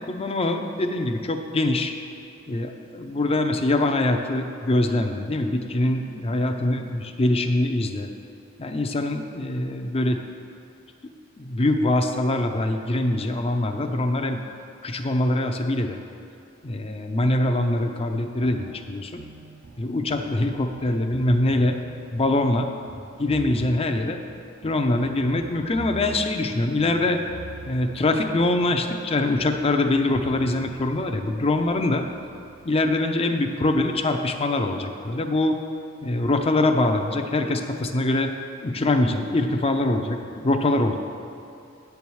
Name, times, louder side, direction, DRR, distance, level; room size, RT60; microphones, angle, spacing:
voice 1, 0.0-1.9 2.5-8.1 8.6-10.2 11.4-14.4 14.8-16.0 16.6-19.2 19.8-21.8 22.1-22.7 23.2-24.2 24.6-27.2 27.7-32.0 32.6-35.6 36.0-38.3 38.6-41.0, left 2 dB, 30° left, 5 dB, 0.6 m, -23 dB
sound 1, 17.5-33.1, right 3 dB, 65° right, 0.8 m, -45 dB
9.2 x 4.7 x 7.0 m, 2.5 s
head